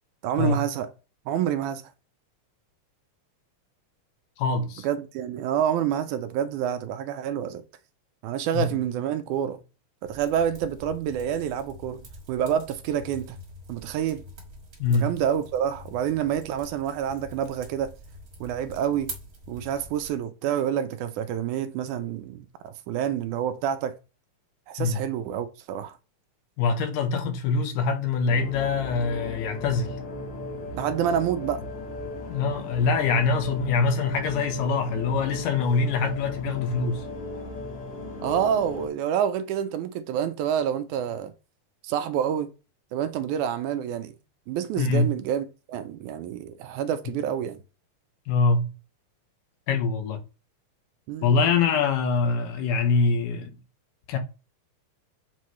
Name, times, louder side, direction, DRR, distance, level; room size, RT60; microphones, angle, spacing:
voice 1, 0.2-0.9 1.3-1.8 4.8-7.6 8.2-9.6 10.0-13.4 13.7-14.2 14.9-17.9 18.4-19.1 19.5-23.9 24.7-26.0 30.7-31.6 38.2-41.3 41.8-42.5 42.9-44.2 44.5-47.6 51.1-51.3, right 9 dB, 80° right, 2.0 m, -28 dB
voice 2, 4.4-4.9 8.5-8.8 14.8-15.1 24.8-25.0 26.6-29.9 32.3-37.0 44.8-45.1 48.3-48.7 49.7-50.2 51.2-53.5 54.1-54.2, left 4 dB, 85° left, 2.6 m, -24 dB
sound 1, 10.0-20.2, right 1 dB, 40° right, 1.3 m, -45 dB
sound 2, 28.3-38.9, left 2 dB, 55° left, 0.9 m, -37 dB
7.5 x 4.3 x 3.1 m
omnidirectional pair, 3.7 m